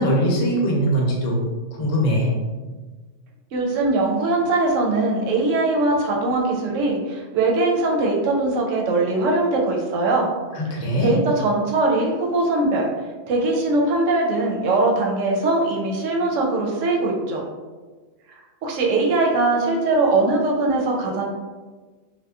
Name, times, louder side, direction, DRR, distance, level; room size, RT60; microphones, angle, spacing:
voice 1, 0.0-1.4 1.8-2.3 10.5-11.2, equal, 85° left, -2 dB, 1.0 m, -21 dB
voice 2, 3.5-10.3 11.0-12.9 13.3-17.4 18.6-21.3, right 2 dB, 90° right, 0 dB, 0.9 m, -21 dB
2.9 x 2.1 x 2.3 m, 1.3 s
omnidirectional pair, 1.3 m